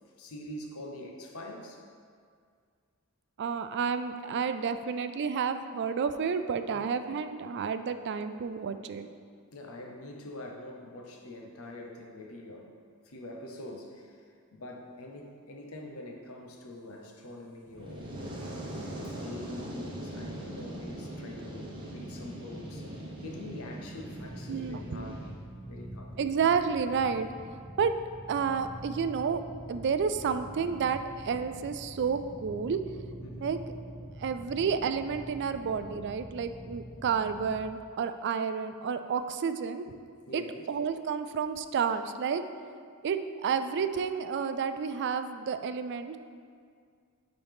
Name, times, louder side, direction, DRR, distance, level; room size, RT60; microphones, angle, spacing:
voice 1, 0.2-1.8 6.7-6.9 9.5-12.7 13.0-18.4 18.8-25.2 25.6-26.2 33.2-33.6 40.3-40.7, left 1 dB, 70° left, 2 dB, 0.9 m, -45 dB
voice 2, 3.4-9.1 24.5-25.2 26.2-27.3 27.8-27.9 28.3-29.4 29.7-32.8 33.4-33.6 34.2-39.9 40.3-42.4 43.0-46.2, right 6 dB, 55° right, 10 dB, 0.3 m, -30 dB
Fire, 17.6-25.3, right 1 dB, 25° right, 1.2 m, -41 dB
sound 1, 24.1-37.6, right 1 dB, 10° left, 1.2 m, -45 dB
10.5 x 4.0 x 3.5 m, 2.1 s
head